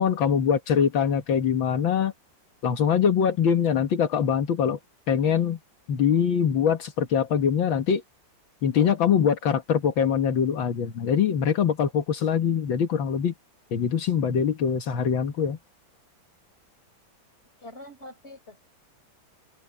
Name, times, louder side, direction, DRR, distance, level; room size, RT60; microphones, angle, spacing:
voice 1, 0.0-2.1 2.6-4.8 5.1-5.6 5.9-8.0 8.6-13.3 13.7-15.6, left 7 dB, 80° left, 2.2 m, -23 dB
voice 2, 17.6-18.6, left 1 dB, 30° left, 5.0 m, -44 dB
omnidirectional pair, 2.1 m